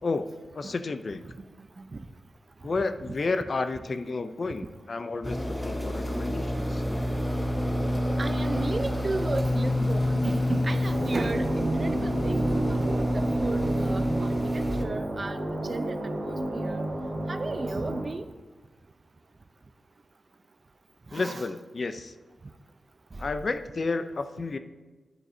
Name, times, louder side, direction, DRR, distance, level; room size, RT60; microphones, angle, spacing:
voice 1, 0.0-1.2 2.6-6.8 21.1-22.1 23.2-24.6, left 3 dB, 50° left, 10 dB, 0.5 m, -31 dB
sound 1, 5.2-14.8, equal, 5° left, 1.0 m, -28 dB
voice 2, 8.2-14.3 14.5-15.4 15.7-16.0 16.2-16.8 17.3-18.2 21.1-21.5, right 3 dB, 40° right, 11 dB, 0.5 m, -34 dB
sound 2, 10.9-18.0, right 1 dB, 85° right, 2.4 m, -32 dB
10.5 x 10.0 x 2.7 m, 1.3 s
wide cardioid pair, 80°, 0 cm